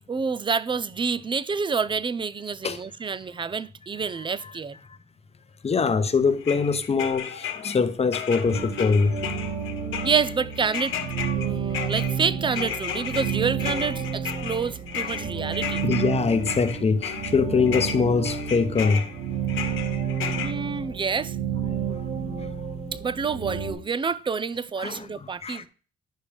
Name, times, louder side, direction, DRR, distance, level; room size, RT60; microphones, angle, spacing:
voice 1, 0.1-4.8 10.0-11.0 11.3-15.8 20.4-21.4 22.9-25.7, right 5 dB, 25° right, 0.5 m, -28 dB
voice 2, 5.6-9.2 15.8-19.1 24.8-25.6, left 5 dB, 30° left, 0.9 m, -23 dB
sound 1, 6.4-7.8 8.1-17.4 17.7-20.5, left 8 dB, 80° left, 1.1 m, -34 dB
sound 2, 8.4-23.7, right 7 dB, 45° right, 3.0 m, -31 dB
10.0 x 5.9 x 3.5 m
cardioid pair, 90°, 20 cm